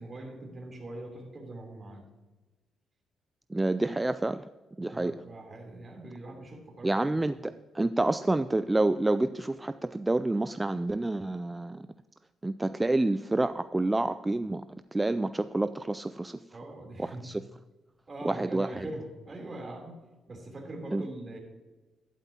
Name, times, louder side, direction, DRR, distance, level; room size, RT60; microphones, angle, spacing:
voice 1, 0.0-2.0 4.8-7.2 16.5-17.3 18.1-20.0 20.3-21.4, right 2 dB, 30° right, 1 dB, 3.4 m, -42 dB
voice 2, 3.5-4.5 4.8-5.1 6.8-11.9 12.4-14.6 14.9-16.4 17.0-17.3 18.2-18.9 20.9-21.0, right 2 dB, 15° right, 11 dB, 0.3 m, -28 dB
12.0 x 12.0 x 2.9 m, 1.2 s
cardioid pair, 90°, 0 cm